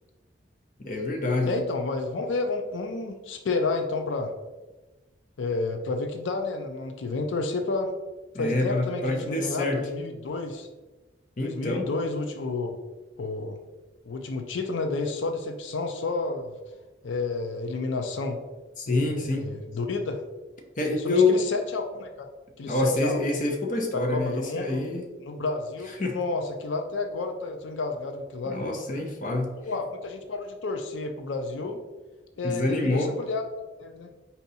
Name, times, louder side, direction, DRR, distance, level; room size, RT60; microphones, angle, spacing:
voice 1, 0.8-1.5 8.3-9.8 11.4-11.9 18.8-19.4 20.8-21.4 22.7-25.0 26.0-26.2 28.5-29.5 32.4-33.1, left 2 dB, 45° left, 2 dB, 0.7 m, -26 dB
voice 2, 1.4-4.3 5.4-7.9 8.4-10.7 11.4-12.8 13.2-13.6 14.1-16.5 17.0-18.4 18.9-20.2 20.9-22.3 22.6-23.4 23.9-24.9 25.2-28.7 29.5-31.8 32.4-33.4 33.8-34.1, left 3 dB, 90° left, 5 dB, 0.4 m, -31 dB
4.5 x 2.8 x 4.0 m, 1.1 s
head